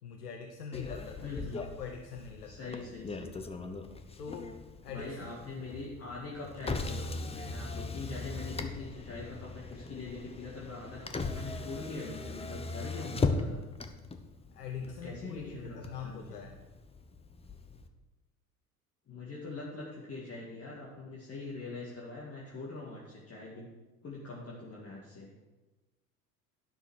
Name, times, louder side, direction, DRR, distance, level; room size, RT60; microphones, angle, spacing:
voice 1, 0.0-2.8 4.2-4.6 4.8-5.3 14.5-16.6, left 6 dB, 85° left, 3 dB, 0.9 m, -43 dB
Motor vehicle (road), 0.7-17.9, left 3 dB, 15° left, 0.9 m, -39 dB
voice 2, 1.2-1.6 2.5-3.4 4.9-13.6 14.8-15.8 16.0-16.4 19.1-23.7 24.0-25.3, left 3 dB, 30° left, -4 dB, 2.1 m, -43 dB
10.5 x 6.2 x 6.4 m, 1.2 s
figure-of-eight pair, 70°, 45 cm